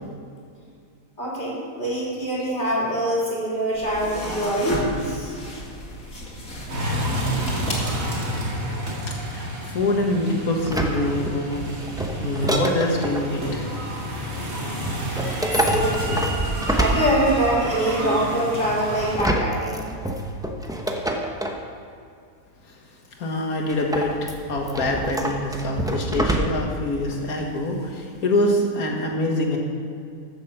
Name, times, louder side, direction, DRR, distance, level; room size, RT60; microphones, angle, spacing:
voice 1, 1.2-5.3 15.5-16.2 16.7-19.9, right 1 dB, 35° left, -6 dB, 3.5 m, -24 dB
sound 1, 3.7-8.5, left 1 dB, 70° left, 2.7 m, -31 dB
sound 2, 6.7-19.2, right 1 dB, 65° right, 2.6 m, -30 dB
voice 2, 9.1-11.7 12.2-13.7 22.6-22.8 23.2-29.6, left 1 dB, 85° left, 1 dB, 2.1 m, -25 dB
sound 3, 10.6-13.3 14.9-17.6 19.0-21.7 23.7-26.8 27.1-27.2, right 1 dB, 5° right, 0.7 m, -27 dB
14.5 x 7.3 x 5.7 m, 2.4 s
omnidirectional pair, 1.5 m